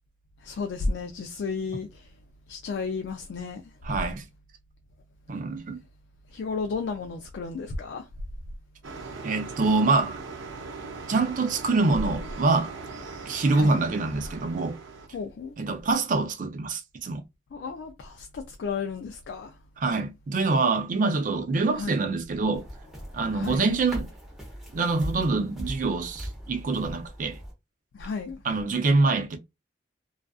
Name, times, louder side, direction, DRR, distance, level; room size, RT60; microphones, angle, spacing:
voice 1, 0.4-2.1 2.5-3.7 6.3-8.1 13.5-13.8 15.1-15.6 17.5-19.6 21.7-22.0 23.3-23.7 27.9-28.4, left 4 dB, 65° left, 0.3 m, -33 dB
voice 2, 3.8-4.2 5.3-5.8 9.2-10.2 11.1-12.7 13.3-14.8 15.6-17.2 19.8-22.7 23.1-24.1 24.7-27.4 28.4-29.4, right 3 dB, 45° right, 0.4 m, -25 dB
sound 1, 8.8-15.1, right 4 dB, 90° right, 0.6 m, -40 dB
sound 2, 22.5-27.5, equal, ahead, 0.8 m, -39 dB
2.4 x 2.3 x 2.3 m
head